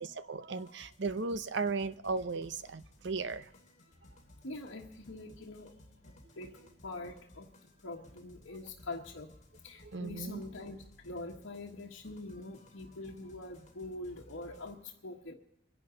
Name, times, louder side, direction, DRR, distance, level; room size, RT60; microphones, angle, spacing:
voice 1, 0.0-3.5 9.8-10.4, right 4 dB, 65° right, 13 dB, 0.7 m, -36 dB
sound 1, 0.6-14.8, left 1 dB, 40° left, 2.8 m, -59 dB
voice 2, 4.4-5.8 6.0-7.5 7.8-9.3 9.6-15.3, left 2 dB, 80° left, -4 dB, 1.5 m, -44 dB
25.5 x 11.0 x 3.9 m, 0.80 s
head